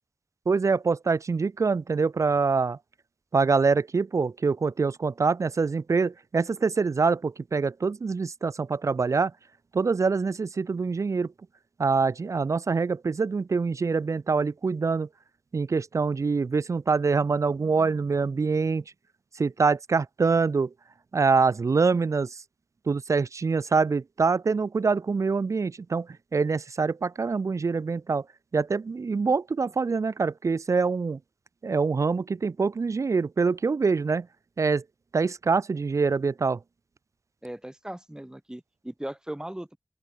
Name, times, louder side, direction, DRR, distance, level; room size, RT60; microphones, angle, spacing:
voice 1, 0.5-2.8 3.3-9.3 9.7-11.3 11.8-15.1 15.5-18.8 19.4-20.7 21.1-22.3 22.9-26.1 26.3-28.2 28.5-31.2 31.6-34.3 34.6-34.8 35.1-36.6, right 4 dB, 80° right, 0.4 m, -25 dB
voice 2, 37.4-39.8, right 1 dB, 15° right, 1.3 m, -38 dB
open air
wide cardioid pair, 60°, 5 cm